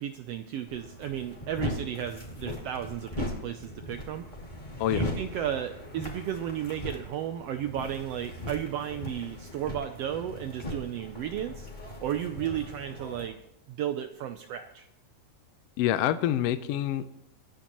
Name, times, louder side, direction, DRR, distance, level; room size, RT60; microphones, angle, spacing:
voice 1, 0.0-4.2 4.9-11.7 12.0-13.4 13.7-14.9, right 10 dB, 75° right, 8 dB, 1.5 m, -34 dB
sound 1, 0.7-13.3, left 1 dB, 15° left, 2.5 m, -39 dB
voice 2, 15.8-17.1, left 12 dB, 75° left, 11 dB, 1.5 m, -26 dB
26.0 x 10.5 x 3.0 m, 0.84 s
omnidirectional pair, 3.4 m